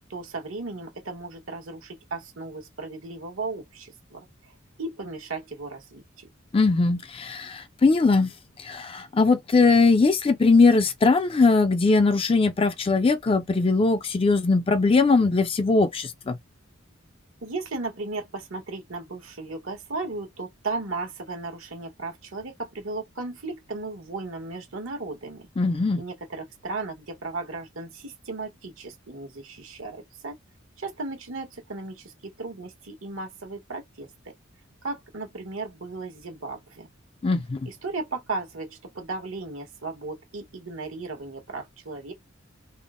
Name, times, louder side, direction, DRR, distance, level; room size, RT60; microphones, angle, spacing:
voice 1, 0.1-4.3 4.8-6.3 17.4-25.5 26.0-30.3 30.8-34.3 34.8-36.9 37.6-42.1, right 3 dB, 85° right, 1.2 m, -35 dB
voice 2, 6.5-8.3 8.6-16.4 25.6-26.0 37.2-37.6, left 3 dB, 25° left, 0.4 m, -20 dB
3.5 x 2.0 x 2.4 m
head